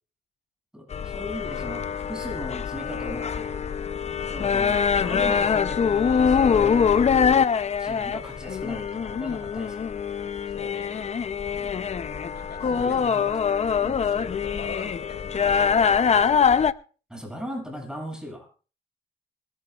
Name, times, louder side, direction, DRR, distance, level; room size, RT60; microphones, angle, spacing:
voice 1, 0.7-3.7 4.3-7.1 7.8-9.9 10.3-10.4 11.5-11.8 12.6-13.5 13.8-14.0 17.1-18.5, equal, 5° right, 2 dB, 7.1 m, -38 dB
sound 1, 0.9-16.7, left 6 dB, 35° left, 0.6 m, -24 dB
voice 2, 10.5-11.2 12.3-13.3 14.0-16.6, left 4 dB, 55° left, 5 dB, 4.5 m, -42 dB
26.5 x 12.5 x 2.4 m, 0.38 s
cardioid pair, 90°, 20 cm